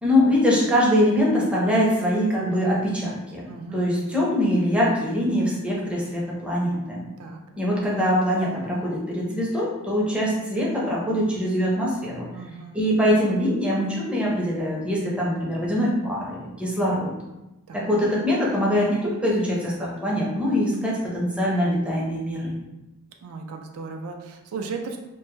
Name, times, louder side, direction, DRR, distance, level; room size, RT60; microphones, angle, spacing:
voice 1, 0.0-3.5 3.7-7.1 7.6-12.3 12.7-17.1 17.7-22.6, equal, 5° right, -5 dB, 0.5 m, -23 dB
voice 2, 3.5-3.8 7.2-7.4 12.3-12.8 17.7-17.8 23.2-25.0, right 4 dB, 70° right, 3 dB, 0.4 m, -35 dB
2.2 x 2.0 x 3.0 m, 1.0 s
head